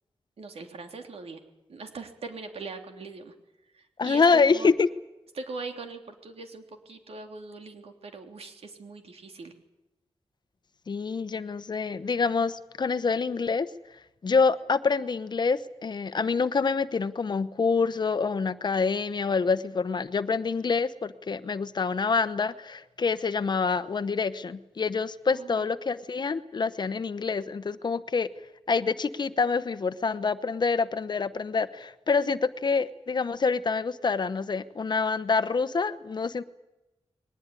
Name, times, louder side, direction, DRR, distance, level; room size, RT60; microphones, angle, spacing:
voice 1, 0.4-1.4 1.7-3.3 3.7-4.7 5.3-9.5 25.3-25.7, right 4 dB, 70° right, 5 dB, 3.3 m, -41 dB
voice 2, 4.0-4.9 10.9-13.7 14.2-28.3 28.7-36.4, left 4 dB, 45° left, 13 dB, 1.0 m, -26 dB
21.5 x 19.5 x 9.8 m, 0.97 s
wide cardioid pair, 150°, 11 cm